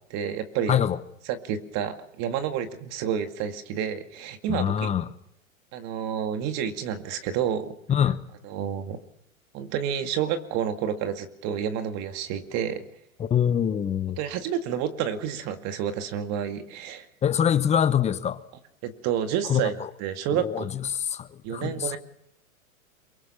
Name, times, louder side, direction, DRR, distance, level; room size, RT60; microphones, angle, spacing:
voice 1, 0.1-0.8 1.3-4.9 5.7-7.8 8.4-9.0 9.5-12.8 14.2-17.1 18.8-20.7 21.4-22.0, right 9 dB, 40° right, 2.2 m, -29 dB
voice 2, 4.5-5.1 7.9-8.2 13.2-14.2 17.2-18.4 19.5-19.6 20.3-22.0, left 9 dB, 15° left, 1.0 m, -24 dB
23.0 x 22.5 x 5.7 m
hypercardioid pair, 125°, 42 cm